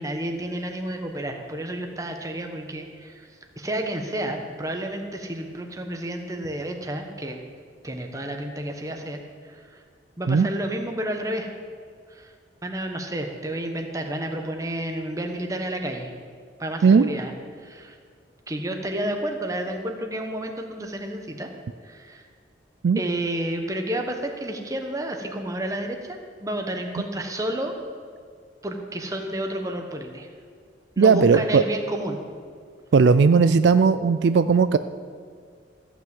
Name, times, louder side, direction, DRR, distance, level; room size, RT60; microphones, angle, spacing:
voice 1, 0.0-3.3 3.6-7.4 7.8-9.2 9.4-9.8 10.2-11.5 12.1-12.3 12.6-16.1 16.6-17.3 17.6-18.0 18.5-21.5 21.8-22.2 23.0-27.7 28.6-30.3 31.0-32.2, right 1 dB, 20° right, 3 dB, 1.1 m, -30 dB
voice 2, 31.0-31.6 32.9-34.8, right 5 dB, 70° right, 11 dB, 0.4 m, -17 dB
14.5 x 5.9 x 7.9 m, 2.1 s
head